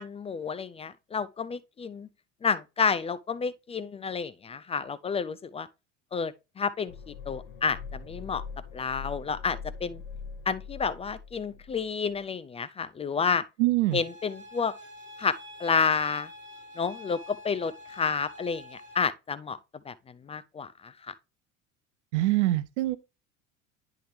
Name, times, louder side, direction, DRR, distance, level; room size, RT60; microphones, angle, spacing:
voice 1, 0.0-2.1 2.4-5.7 6.1-8.4 8.7-10.0 10.5-13.4 13.9-14.7 15.2-16.3 16.8-19.6 19.9-20.0 20.2-21.1, left 5 dB, 15° left, 0.4 m, -30 dB
sound 1, 6.9-11.8 12.1-12.2, left 5 dB, 60° left, 1.3 m, -42 dB
voice 2, 13.6-14.0 22.1-23.0, right 17 dB, 65° right, 0.5 m, -24 dB
sound 2, 13.9-18.9, left 1 dB, 25° right, 3.6 m, -47 dB
10.0 x 3.6 x 3.1 m
hypercardioid pair, 70°, 38 cm